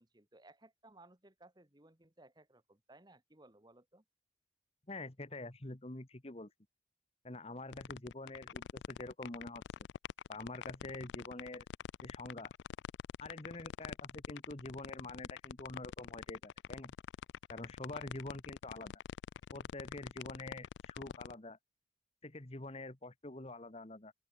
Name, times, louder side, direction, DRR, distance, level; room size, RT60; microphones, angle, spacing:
voice 1, 0.0-4.0, right 2 dB, 25° right, 1.9 m, -61 dB
voice 2, 4.9-6.5 7.2-9.6 10.3-11.6 12.0-12.5 13.2-16.9 17.5-18.9 19.5-21.6 22.2-24.1, left 2 dB, 35° left, 1.5 m, -46 dB
sound 1, 7.7-21.3, left 8 dB, 75° left, 0.3 m, -44 dB
open air
head